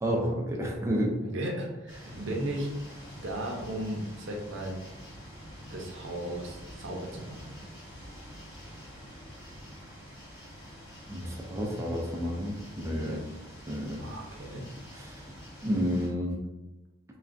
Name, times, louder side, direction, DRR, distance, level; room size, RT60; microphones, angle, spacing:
voice 1, 0.0-1.2 11.1-13.2 13.7-14.0 14.9-15.2 15.6-16.4, equal, 15° right, -2 dB, 0.4 m, -30 dB
voice 2, 1.2-2.7 3.2-4.7 5.7-7.4 13.0-13.2 14.0-14.7, right 1 dB, 65° right, 0 dB, 0.7 m, -35 dB
sound 1, 1.9-16.1, equal, 65° left, 1.2 m, -47 dB
3.3 x 2.3 x 2.4 m, 1.0 s
head